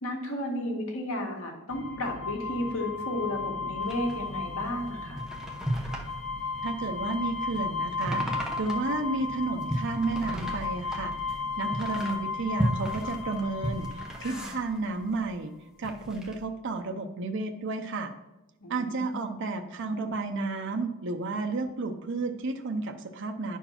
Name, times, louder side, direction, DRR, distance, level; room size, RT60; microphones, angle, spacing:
voice 1, 0.0-5.2 14.2-14.5 18.6-19.2, left 1 dB, 80° left, 1 dB, 1.8 m, -33 dB
sound 1, 1.7-15.1, left 4 dB, 60° left, 1.0 m, -35 dB
sound 2, 3.8-15.4 15.7-16.4, equal, 5° right, 1.0 m, -36 dB
voice 2, 6.6-11.1 11.6-15.5 15.8-18.1 18.7-23.6, right 3 dB, 60° right, 5 dB, 0.6 m, -32 dB
9.9 x 4.6 x 5.7 m, 0.96 s
head